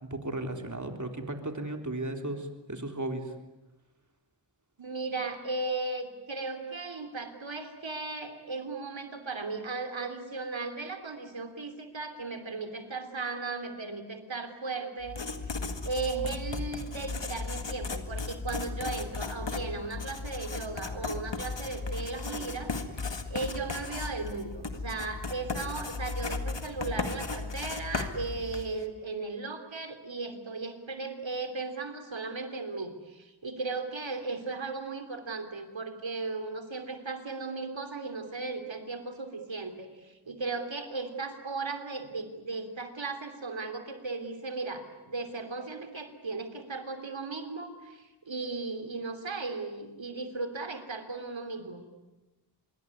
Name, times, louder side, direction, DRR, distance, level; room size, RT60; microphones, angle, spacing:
voice 1, 0.0-3.3, right 2 dB, 40° right, 4 dB, 3.6 m, -35 dB
voice 2, 4.8-15.6 15.8-51.8, right 3 dB, 85° right, 8 dB, 3.3 m, -36 dB
Writing, 15.0-28.8, left 4 dB, 70° left, 2.0 m, -36 dB
26.0 x 23.0 x 9.6 m, 1.1 s
wide cardioid pair, 60°, 44 cm